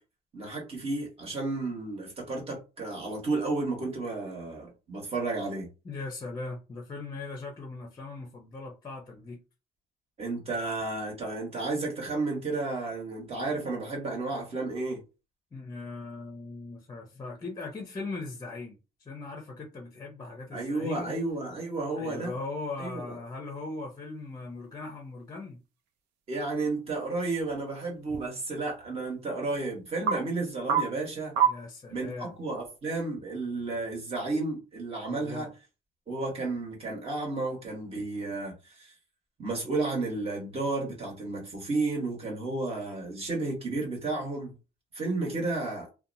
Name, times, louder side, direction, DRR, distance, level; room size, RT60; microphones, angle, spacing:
voice 1, 0.3-5.7 10.2-15.0 20.5-22.3 22.8-23.2 26.3-31.3 31.9-35.5 36.1-38.9 39.4-44.5 44.9-45.9, right 3 dB, 35° right, 1.3 m, -32 dB
voice 2, 5.8-9.4 15.5-21.1 21.9-25.6 31.4-32.4 35.1-35.5, left 3 dB, 25° left, 0.6 m, -39 dB
sound 1, 21.0-33.1, right 8 dB, 85° right, 0.5 m, -36 dB
2.7 x 2.2 x 2.6 m
cardioid pair, 110°, 17 cm